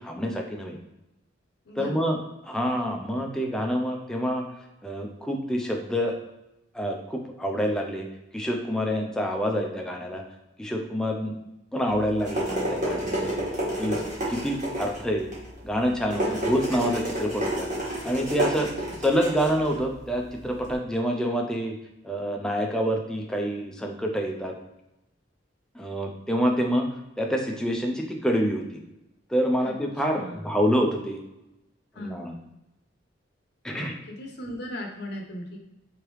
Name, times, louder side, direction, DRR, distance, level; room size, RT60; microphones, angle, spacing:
voice 1, 0.0-0.8 1.8-2.2 2.5-4.4 4.8-6.1 6.7-8.1 8.3-10.2 10.6-11.4 11.7-13.3 13.8-14.0 14.3-15.3 15.6-17.7 18.0-18.7 19.0-21.8 22.0-24.5 25.7-26.9 27.2-28.8 29.3-31.2 32.0-32.3 33.6-33.9, equal, 5° left, 1 dB, 0.4 m, -27 dB
voice 2, 1.7-2.2 13.6-14.1 16.2-16.5 18.6-19.0 29.6-29.7 30.1-30.6 31.9-32.2 33.7-35.6, left 1 dB, 60° left, 1 dB, 0.7 m, -39 dB
sound 1, 11.9-20.7, equal, 40° right, 1.4 m, -31 dB
3.5 x 3.2 x 3.1 m, 0.92 s
head